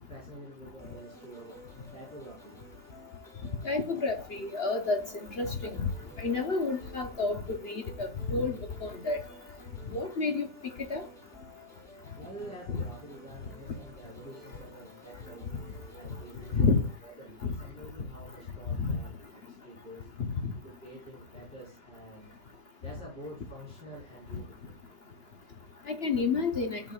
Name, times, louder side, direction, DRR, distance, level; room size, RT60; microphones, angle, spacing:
voice 1, 0.1-1.6 1.9-2.6 12.1-15.5 15.9-20.1 20.5-22.3 22.8-24.8, right 1 dB, 85° left, 5.0 m, -48 dB
sound 1, 0.8-17.0, equal, ahead, 2.4 m, -53 dB
voice 2, 3.6-5.0 5.3-5.9 6.2-9.2 9.9-10.5 10.9-11.0 12.7-12.8 16.5-16.8 17.4-17.5 18.8-19.0 20.4-20.5 25.9-26.8, left 4 dB, 50° left, 0.8 m, -29 dB
11.5 x 6.5 x 2.4 m
omnidirectional pair, 2.0 m